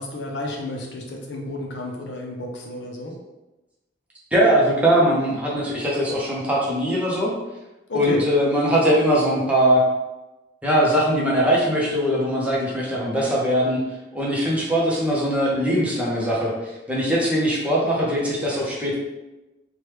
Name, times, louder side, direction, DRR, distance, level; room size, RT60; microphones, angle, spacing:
voice 1, 0.0-3.1 7.9-8.2, left 1 dB, 70° left, 1 dB, 0.5 m, -31 dB
voice 2, 4.3-7.3 7.9-9.8 10.6-13.8 14.1-16.5 16.9-18.9, equal, 10° right, -5 dB, 0.6 m, -21 dB
3.0 x 2.2 x 3.2 m, 1.0 s
head